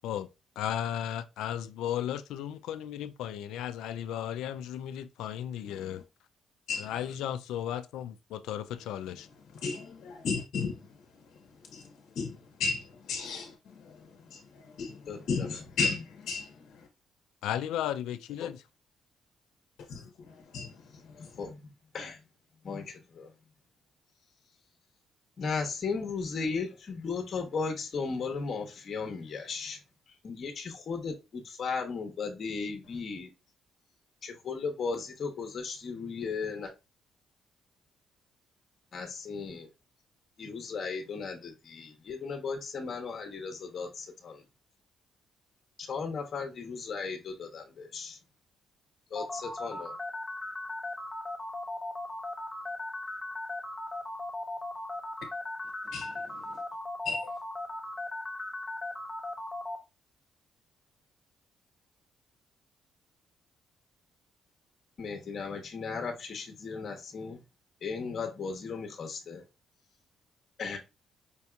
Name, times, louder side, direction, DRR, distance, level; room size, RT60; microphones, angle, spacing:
voice 1, 0.6-6.0 6.8-9.3 17.4-18.6, left 10 dB, 90° left, 0.3 m, -35 dB
voice 2, 9.6-10.8 11.7-11.9 12.1-14.0 14.3-14.4 14.8-16.8 19.9-20.0 20.5-20.7 55.9-56.1 57.0-57.3, left 4 dB, 75° left, 0.8 m, -34 dB
voice 3, 15.1-15.6 18.4-18.5 21.2-21.6 21.9-22.2 22.6-23.3 25.4-29.8 30.2-33.3 34.2-36.7 38.9-39.7 40.4-44.4 45.8-48.2 49.1-49.9 65.0-67.4 67.8-69.4 70.6-70.8, left 5 dB, 50° left, 1.0 m, -36 dB
sound 1, 49.1-59.8, left 2 dB, 20° left, 0.9 m, -37 dB
5.2 x 2.7 x 2.4 m
cardioid pair, 90°, 0 cm